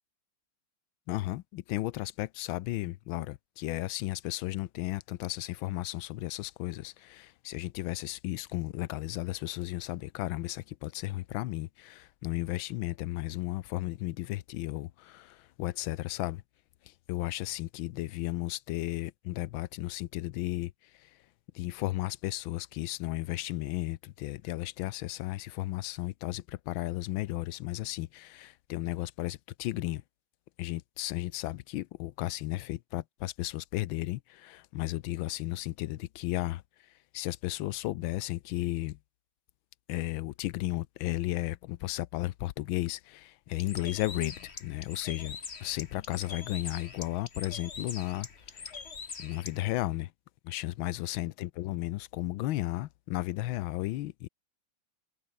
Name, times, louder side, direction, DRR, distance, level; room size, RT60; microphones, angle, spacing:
voice 1, 1.1-16.4 16.8-21.1 21.5-30.0 30.6-36.6 37.1-39.0 39.9-48.8 49.2-50.1 50.4-54.3, left 16 dB, 80° left, 1.5 m, -34 dB
Bird, 43.5-49.6, left 5 dB, 35° left, 1.7 m, -43 dB
omnidirectional pair, 2.2 m